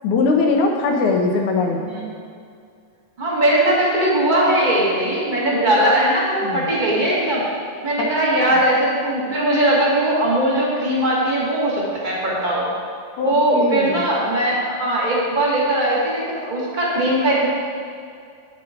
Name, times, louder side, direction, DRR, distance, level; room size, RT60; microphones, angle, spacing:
voice 1, 0.0-1.8 5.5-6.0 6.4-6.7 8.0-8.1 8.4-8.6 13.2-14.1, left 3 dB, 75° left, 1 dB, 2.1 m, -21 dB
voice 2, 3.2-7.4 7.8-12.7 13.2-17.5, right 1 dB, 25° right, -5 dB, 1.0 m, -19 dB
9.7 x 7.7 x 4.3 m, 2.3 s
omnidirectional pair, 3.9 m